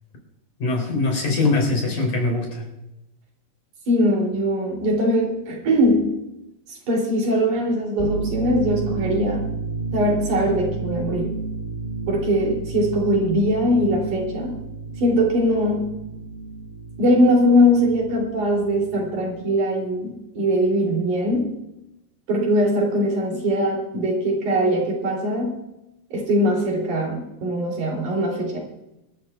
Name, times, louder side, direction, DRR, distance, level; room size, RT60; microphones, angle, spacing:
voice 1, 0.6-2.6, left 3 dB, 80° left, 1 dB, 5.0 m, -22 dB
voice 2, 3.9-6.1 6.7-9.5 9.9-11.4 12.1-14.6 15.0-15.9 17.0-21.5 22.3-25.6 26.1-28.6, equal, 75° right, -1 dB, 4.6 m, -21 dB
sound 1, 8.0-19.4, right 4 dB, 15° right, 4.6 m, -31 dB
26.0 x 12.5 x 2.4 m, 0.92 s
omnidirectional pair, 3.5 m